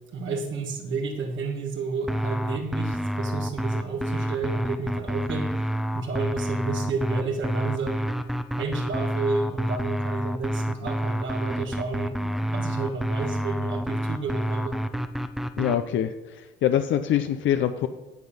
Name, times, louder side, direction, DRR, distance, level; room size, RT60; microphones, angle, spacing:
voice 1, 0.1-8.1 8.6-14.8, right 3 dB, 75° right, 3 dB, 1.7 m, -31 dB
sound 1, 2.1-15.8, equal, ahead, 0.7 m, -28 dB
voice 2, 15.6-17.9, left 10 dB, 75° left, 9 dB, 0.5 m, -24 dB
9.6 x 7.0 x 5.6 m, 1.2 s
cardioid pair, 90°, 20 cm